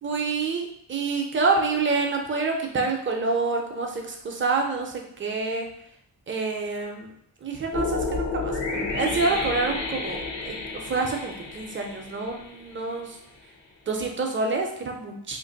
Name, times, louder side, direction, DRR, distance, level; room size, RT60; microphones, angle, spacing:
voice 1, 0.0-5.7 6.3-7.1 7.4-13.2 13.9-15.4, right 4 dB, 30° right, 2 dB, 0.5 m, -27 dB
sound 1, 7.7-12.9, left 3 dB, 85° left, 0.9 m, -31 dB
2.9 x 2.5 x 3.9 m, 0.70 s
wide cardioid pair, 165°, 43 cm